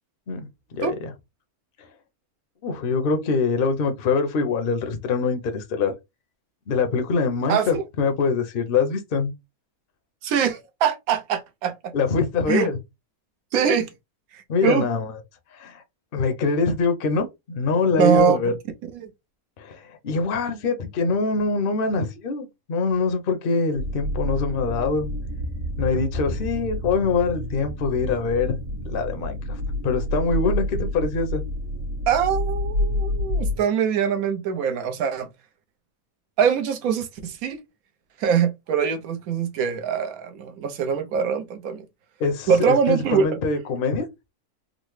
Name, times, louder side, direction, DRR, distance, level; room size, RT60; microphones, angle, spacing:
voice 1, 0.3-1.1 1.8-1.9 2.6-5.9 6.7-9.3 11.9-12.8 14.5-15.1 15.5-15.8 16.1-18.5 19.6-25.1 25.8-28.6 28.8-31.4 42.2-44.1, left 4 dB, 55° left, 0.7 m, -24 dB
voice 2, 7.5-7.8 10.2-11.9 12.5-12.7 13.5-13.9 14.3-14.8 18.0-18.4 18.9-19.1 32.1-35.3 36.4-37.6 38.2-41.8 42.5-43.3, right 7 dB, 75° right, 1.1 m, -23 dB
sound 1, 23.7-33.6, left 1 dB, 55° right, 1.4 m, -28 dB
3.8 x 2.0 x 3.1 m
omnidirectional pair, 1.5 m